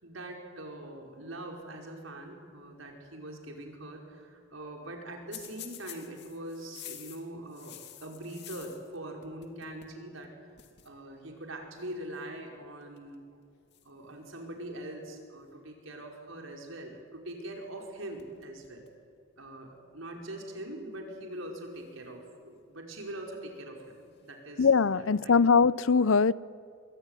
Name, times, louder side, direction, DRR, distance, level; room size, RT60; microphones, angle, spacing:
voice 1, 0.0-7.7 8.0-10.3 10.8-13.3 13.8-18.8 19.4-23.8 24.2-24.7 25.0-25.4, right 1 dB, 75° right, 5.3 m, -42 dB
sound 1, 5.3-9.0 9.2-10.0 10.2-10.3 10.6-10.9 11.8-12.0 12.8-13.2 13.7-14.8 17.7-17.9 18.2-19.0 19.4-19.5 20.5-20.6 21.7-22.6 23.8-24.4, left 11 dB, 55° left, 2.5 m, -50 dB
voice 2, 24.6-26.3, left 5 dB, 75° left, 0.6 m, -22 dB
25.5 x 22.5 x 9.9 m
head